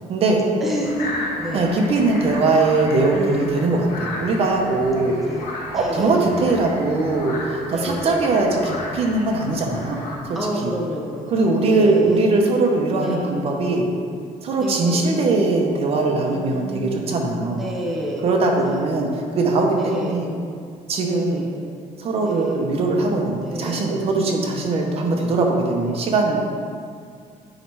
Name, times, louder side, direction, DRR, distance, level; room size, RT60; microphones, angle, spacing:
voice 1, 0.1-0.4 1.5-5.2 5.7-10.0 10.3-10.4 10.6-10.7 11.3-13.8 14.4-17.6 18.2-20.3 20.9-21.4 22.0-26.4, right 3 dB, 45° right, 1 dB, 0.8 m, -20 dB
voice 2, 0.6-1.7 3.1-3.6 5.1-6.2 7.7-8.1 10.3-12.2 12.9-13.3 14.5-15.1 16.2-17.1 17.5-19.0 19.8-20.3 21.0-21.6 22.2-22.6 23.3-23.8, equal, ahead, -3 dB, 0.6 m, -30 dB
sound 1, 0.8-10.1, left 2 dB, 65° left, 1.6 m, -34 dB
8.7 x 3.2 x 4.6 m, 2.2 s
cardioid pair, 165°, 15 cm